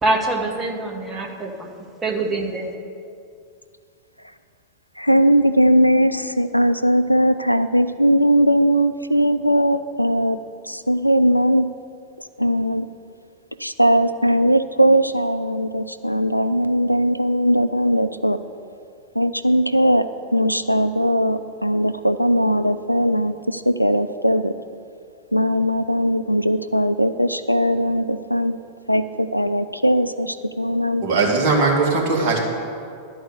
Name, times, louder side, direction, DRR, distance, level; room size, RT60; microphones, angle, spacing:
voice 1, 0.0-1.7 2.0-2.7, right 2 dB, 20° right, 1.4 m, -24 dB
voice 2, 5.0-10.4 10.6-11.7 12.4-12.9 13.6-18.4 19.1-24.6 25.3-28.6 28.9-31.0, equal, 90° left, 0.4 m, -19 dB
voice 3, 31.0-32.4, right 3 dB, 45° right, 2.2 m, -19 dB
11.5 x 4.8 x 8.1 m
figure-of-eight pair, 90°, 0 cm